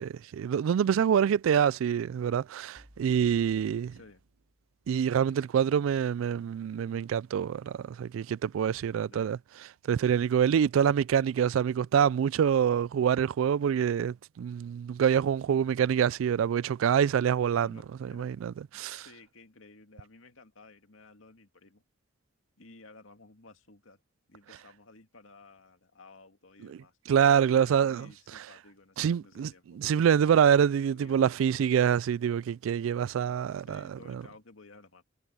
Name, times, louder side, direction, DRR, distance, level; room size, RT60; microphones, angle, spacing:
voice 1, 0.0-3.9 4.9-9.4 9.9-19.1 27.1-28.1 29.0-29.5 29.8-33.8 34.1-34.2, right 8 dB, 85° right, 0.3 m, -26 dB
sound 1, 2.8-4.9, equal, 40° right, 2.0 m, -59 dB
voice 2, 3.9-4.2 9.0-9.4 17.6-18.3 18.7-21.8 22.6-24.0 24.3-27.0 27.6-29.8 30.9-31.4 33.5-35.0, left 3 dB, 80° left, 2.3 m, -55 dB
head